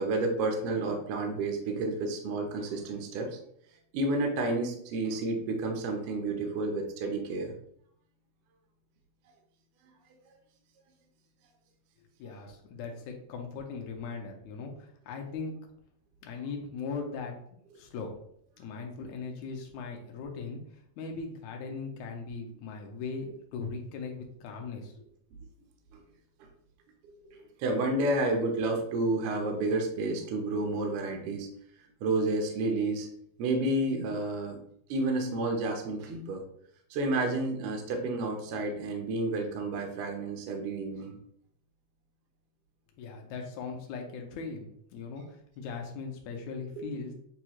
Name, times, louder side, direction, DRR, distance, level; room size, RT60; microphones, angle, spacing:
voice 1, 0.0-3.4 3.9-7.5 27.3-31.5 32.0-33.1 33.4-34.6 34.9-36.4 36.9-41.2 46.8-46.9, right 2 dB, 75° right, 2 dB, 1.4 m, -30 dB
voice 2, 12.2-15.5 16.2-17.3 17.8-18.1 18.6-20.6 21.0-25.1 43.0-47.1, left 4 dB, 75° left, 2 dB, 2.0 m, -39 dB
7.0 x 2.3 x 3.0 m, 0.67 s
omnidirectional pair, 3.5 m